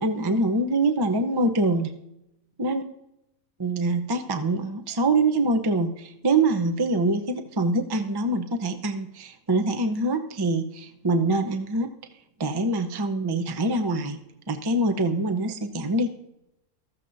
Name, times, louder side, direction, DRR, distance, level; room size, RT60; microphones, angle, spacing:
voice 1, 0.0-1.9 2.6-2.8 3.6-11.9 12.4-14.2 14.5-16.1, right 2 dB, 25° right, 6 dB, 0.5 m, -24 dB
14.5 x 14.5 x 2.7 m, 0.86 s
omnidirectional pair, 1.6 m